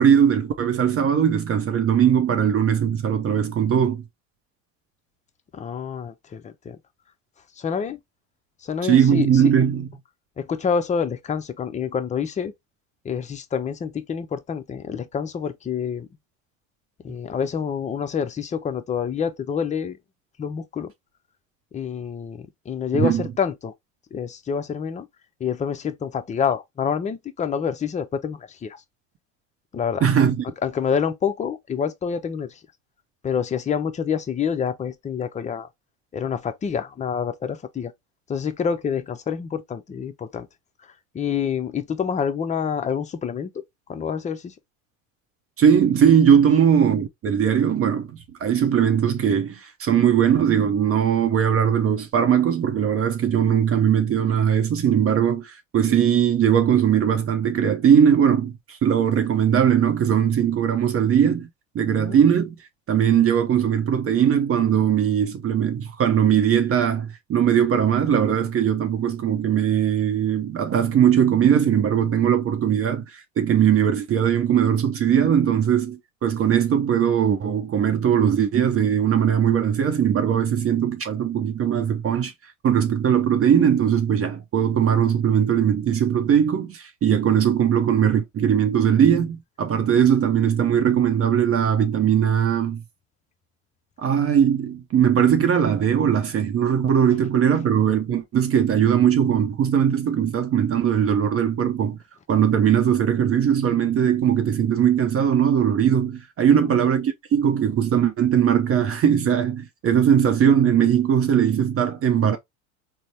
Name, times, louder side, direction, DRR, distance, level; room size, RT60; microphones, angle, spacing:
voice 1, 0.0-4.0 8.8-9.9 22.9-23.2 30.0-30.4 45.6-61.5 61.7-62.6 62.9-82.3 82.6-92.8 94.0-102.0 102.3-112.4, right 8 dB, 35° right, 0.8 m, -20 dB
voice 2, 5.5-6.8 7.6-8.0 8.6-9.5 10.4-12.5 13.0-16.1 17.0-20.0 20.4-20.9 21.7-23.7 24.1-25.1 25.4-28.8 29.7-30.1 30.6-32.6 33.2-35.7 36.1-37.9 38.3-40.5 41.1-43.6 43.9-44.5 61.9-62.2 106.5-106.7, left 7 dB, 20° left, 0.5 m, -27 dB
3.9 x 2.1 x 3.1 m
hypercardioid pair, 80°, 40 cm